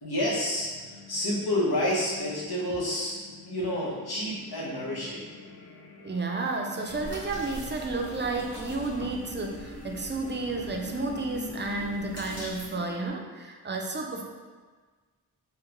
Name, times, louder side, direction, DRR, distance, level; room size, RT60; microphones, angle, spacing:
voice 1, 0.0-5.2 5.5-5.6, left 1 dB, 80° left, -6 dB, 1.0 m, -29 dB
sound 1, 0.6-13.1, left 1 dB, 40° left, 0.6 m, -45 dB
voice 2, 6.0-14.2, right 3 dB, 30° right, 2 dB, 0.4 m, -32 dB
sound 2, 6.9-12.7, equal, 60° left, 1.4 m, -44 dB
3.7 x 2.2 x 2.9 m, 1.4 s
wide cardioid pair, 50°, 38 cm